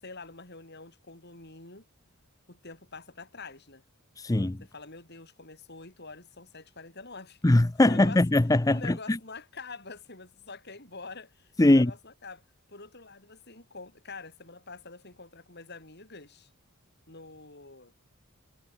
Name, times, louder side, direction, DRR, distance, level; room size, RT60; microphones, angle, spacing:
voice 1, 0.0-1.9 2.5-3.8 4.6-7.4 7.8-8.2 8.7-16.5 17.1-17.9, left 3 dB, 50° left, 7.7 m, -46 dB
voice 2, 4.2-4.6 7.4-9.2 11.6-11.9, left 1 dB, 15° left, 0.5 m, -21 dB
head